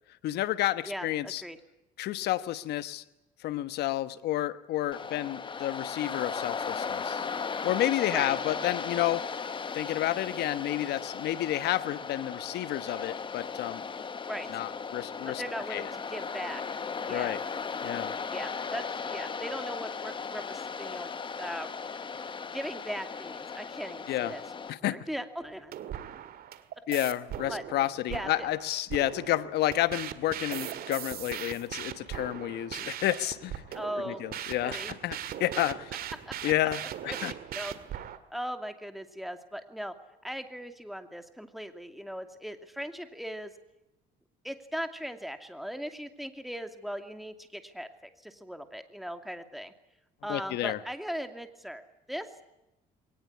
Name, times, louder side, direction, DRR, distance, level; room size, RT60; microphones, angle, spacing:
voice 1, 0.2-1.4 2.0-3.0 3.4-7.3 7.6-9.3 9.7-13.8 14.5-15.4 15.7-15.8 17.1-17.4 17.8-18.1 24.1-24.3 24.7-25.0 26.9-33.6 34.1-35.9 36.4-37.3 50.3-50.8, left 14 dB, 75° left, 14 dB, 1.2 m, -30 dB
voice 2, 0.9-1.6 8.1-8.4 14.3-14.5 15.2-16.6 17.0-17.3 18.3-21.7 22.5-24.4 24.8-25.8 27.5-27.6 28.1-28.5 33.7-34.2 34.6-34.9 36.3-36.4 37.1-37.7 38.3-39.9 40.2-43.5 44.4-49.7 50.2-51.8 52.1-52.3, equal, ahead, 7 dB, 2.6 m, -39 dB
Waves surf, 4.9-24.7, left 5 dB, 30° left, 1.3 m, -36 dB
sound 1, 25.4-38.2, right 10 dB, 65° right, 2.0 m, -39 dB
22.5 x 19.0 x 9.7 m, 0.93 s
cardioid pair, 110°, 17 cm